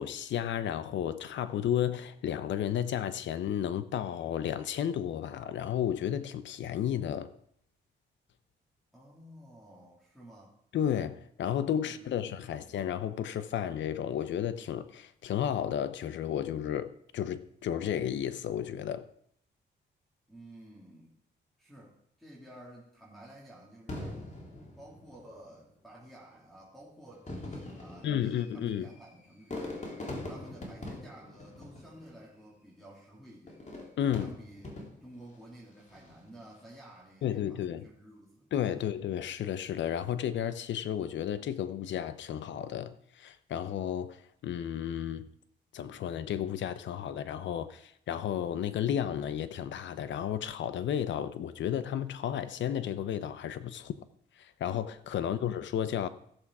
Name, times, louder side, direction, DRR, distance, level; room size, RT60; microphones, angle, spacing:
voice 1, 0.0-7.3 10.7-19.1 28.0-28.9 34.0-34.3 37.2-37.9 38.5-45.3 45.7-53.9 54.4-56.1, left 10 dB, 80° left, 0.8 m, -33 dB
voice 2, 8.9-10.6 11.5-12.7 20.3-21.2 21.6-24.2 24.8-29.8 30.2-33.6 34.2-34.7 35.0-38.9 55.2-55.6, right 1 dB, ahead, 3.4 m, -52 dB
Fireworks, 23.9-25.5 26.3-26.4 27.1-32.4 33.5-35.2 35.8-36.3, left 2 dB, 40° left, 3.1 m, -42 dB
15.5 x 7.2 x 4.8 m
cardioid pair, 80°, 19 cm